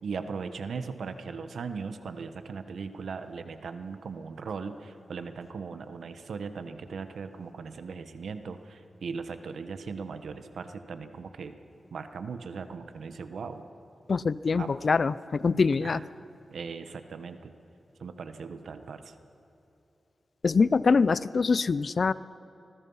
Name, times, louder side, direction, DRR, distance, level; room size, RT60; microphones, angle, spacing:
voice 1, 0.0-11.6 11.9-13.7 14.6-14.7 15.8-16.0 16.5-17.5 18.0-19.1, right 5 dB, 85° right, 9 dB, 1.2 m, -38 dB
voice 2, 14.1-16.0 20.4-22.1, left 4 dB, 60° left, 18 dB, 0.5 m, -24 dB
26.5 x 20.5 x 5.6 m, 3.0 s
cardioid pair, 70°, 0 cm